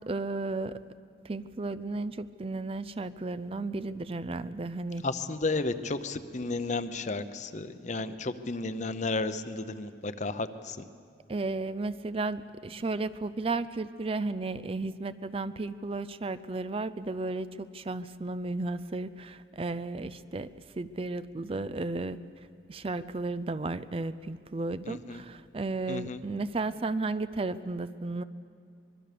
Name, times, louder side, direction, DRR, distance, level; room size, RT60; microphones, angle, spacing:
voice 1, 0.1-0.8 1.2-5.1 11.3-22.2 22.7-28.2, right 3 dB, 30° right, 14 dB, 0.4 m, -34 dB
voice 2, 5.0-10.8 24.9-25.2 25.9-26.2, left 3 dB, 40° left, 12 dB, 0.8 m, -33 dB
24.0 x 22.0 x 6.8 m, 2.5 s
head